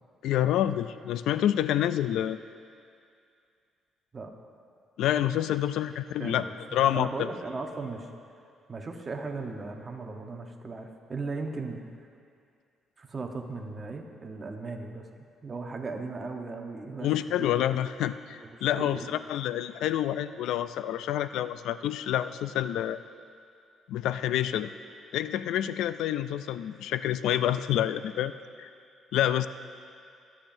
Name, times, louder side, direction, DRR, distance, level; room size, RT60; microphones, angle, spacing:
voice 1, 0.2-2.4 5.0-6.4 6.7-7.1 17.0-23.0 23.9-24.7 25.1-28.3 28.6-28.7 29.1-29.5, left 11 dB, 80° left, 13 dB, 0.3 m, -28 dB
voice 2, 5.9-8.1 8.7-11.8 13.0-15.1 15.4-17.1 17.4-17.6 18.4-19.1, right 3 dB, 25° right, 3 dB, 1.0 m, -37 dB
23.0 x 8.7 x 2.7 m, 2.4 s
cardioid pair, 130°, 0 cm